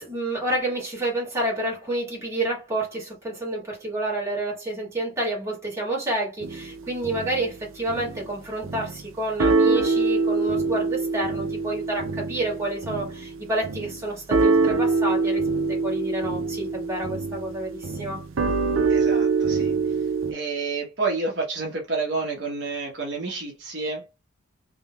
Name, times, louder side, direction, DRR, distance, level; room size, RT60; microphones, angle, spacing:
voice 1, 0.0-15.4 15.7-18.2, right 1 dB, 15° right, 2.0 m, -29 dB
sound 1, 6.4-7.5 7.9-8.3 8.6-9.1 9.4-20.3, right 4 dB, 90° right, 0.6 m, -24 dB
voice 2, 18.9-20.0 20.3-24.1, right 3 dB, 60° right, 1.1 m, -29 dB
3.7 x 2.8 x 2.3 m
head